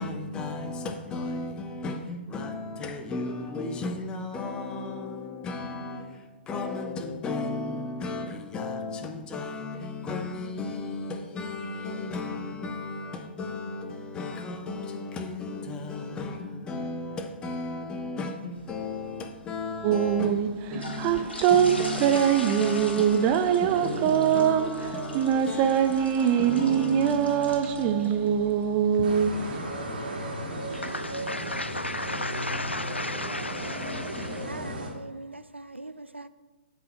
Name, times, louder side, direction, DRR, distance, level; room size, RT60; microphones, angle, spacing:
voice 1, 0.0-29.8, left 3 dB, 15° left, 0.7 m, -35 dB
sound 1, 18.5-30.9, left 2 dB, 70° left, 1.6 m, -43 dB
sound 2, 19.8-29.6, right 9 dB, 25° right, 0.4 m, -23 dB
sound 3, 29.0-34.9, right 1 dB, 55° right, 2.7 m, -35 dB
voice 2, 30.7-34.5, left 2 dB, 90° left, 0.4 m, -34 dB
voice 3, 34.4-36.3, right 2 dB, 90° right, 0.5 m, -42 dB
7.9 x 4.9 x 6.1 m
figure-of-eight pair, 125°, 6 cm